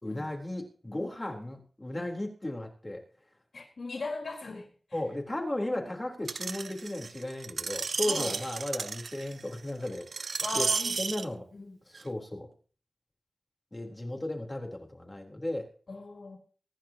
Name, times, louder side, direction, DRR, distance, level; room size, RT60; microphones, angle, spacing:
voice 1, 0.0-3.0 4.9-10.7 11.0-11.5 11.9-12.5 13.7-15.7, left 1 dB, 25° left, 1 dB, 3.7 m, -35 dB
voice 2, 3.5-4.7 8.1-8.4 10.4-11.0 11.5-11.8 15.9-16.4, left 3 dB, 70° left, 0 dB, 4.2 m, -38 dB
Screech, 6.3-11.2 11.9-12.0, right 5 dB, 90° right, 0.5 m, -33 dB
24.0 x 10.5 x 2.9 m, 0.40 s
wide cardioid pair, 90°, 0 cm